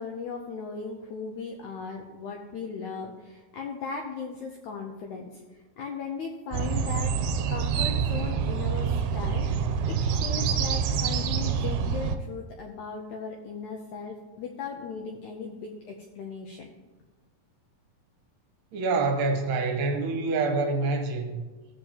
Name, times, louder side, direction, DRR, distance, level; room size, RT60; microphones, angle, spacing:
voice 1, 0.0-7.2 7.5-16.7, left 5 dB, 80° left, 2 dB, 1.7 m, -37 dB
sound 1, 6.5-12.2, right 6 dB, 90° right, 2.4 m, -27 dB
voice 2, 18.7-21.4, right 3 dB, 75° right, 3 dB, 2.5 m, -26 dB
16.0 x 7.2 x 2.9 m, 1.3 s
omnidirectional pair, 4.2 m